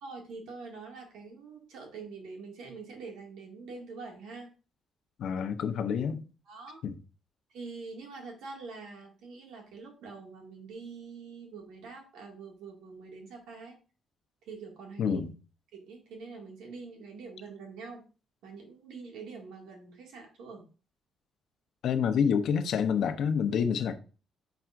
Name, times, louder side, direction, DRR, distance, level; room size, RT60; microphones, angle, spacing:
voice 1, 0.0-4.5 6.5-6.8 7.5-13.8 14.4-15.2 15.7-18.0 18.4-20.7, right 4 dB, 85° right, 2.0 m, -45 dB
voice 2, 5.2-6.2 6.8-6.9 15.0-15.3 21.8-24.0, left 7 dB, 70° left, 0.7 m, -28 dB
6.8 x 5.8 x 2.5 m
cardioid pair, 90°, 0 cm